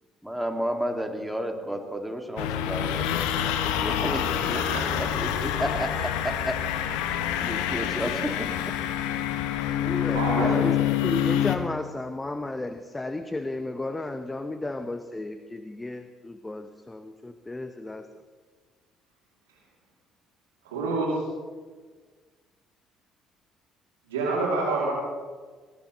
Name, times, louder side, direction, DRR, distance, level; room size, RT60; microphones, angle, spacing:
voice 1, 0.2-6.9 7.4-8.8, equal, 5° right, 4 dB, 2.2 m, -32 dB
sound 1, 2.4-11.6, left 10 dB, 70° left, 0.9 m, -27 dB
voice 2, 4.5-5.0 7.0-7.2 9.5-9.8 10.1-10.6 20.6-21.3 24.1-24.9, right 3 dB, 80° right, -4 dB, 2.8 m, -28 dB
voice 3, 9.8-10.8 11.0-18.1, left 2 dB, 15° left, 9 dB, 0.9 m, -33 dB
20.5 x 17.5 x 3.2 m, 1.5 s
figure-of-eight pair, 50°, 0 cm